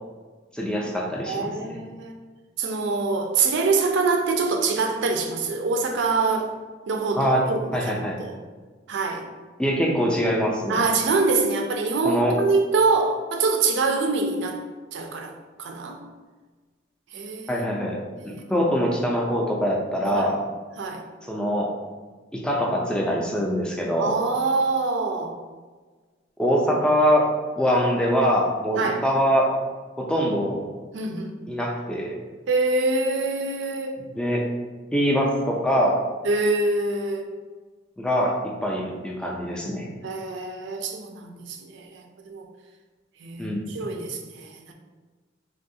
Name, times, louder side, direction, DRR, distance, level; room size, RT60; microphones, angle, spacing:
voice 1, 0.5-1.8 7.2-7.4 7.7-8.2 9.6-10.8 12.0-12.4 17.5-20.4 21.2-21.8 22.3-24.2 26.4-27.2 27.6-29.5 30.0-30.6 31.5-32.2 34.1-34.5 34.9-35.9 38.0-39.9 43.4-43.6, equal, 5° left, -2 dB, 0.4 m, -23 dB
voice 2, 1.3-2.1 2.6-6.5 6.9-8.4 8.9-9.2 10.7-14.6 14.9-15.3 15.6-16.0 17.1-17.7 18.2-18.4 20.0-20.3 20.8-21.0 24.0-25.4 28.8-29.0 30.9-31.4 32.5-34.0 36.2-37.3 40.0-42.5 43.2-44.7, right 3 dB, 65° right, 4 dB, 0.4 m, -25 dB
3.4 x 2.3 x 2.7 m, 1.4 s
head